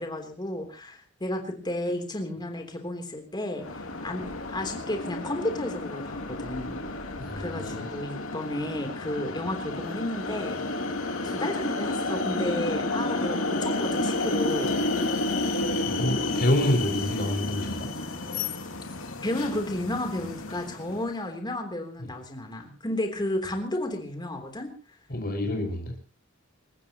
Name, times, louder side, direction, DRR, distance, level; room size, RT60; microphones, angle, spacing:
voice 1, 0.0-3.7 4.0-4.3 4.5-6.8 7.4-10.6 11.2-14.8 19.2-24.7, left 1 dB, 20° left, 4 dB, 3.5 m, -32 dB
sound 1, 3.6-21.1, left 2 dB, 80° left, 2.6 m, -31 dB
voice 2, 7.2-7.9 15.8-17.9 22.0-22.1 25.1-25.9, left 1 dB, 45° left, 3 dB, 5.8 m, -27 dB
29.0 x 15.5 x 3.0 m, 0.34 s
head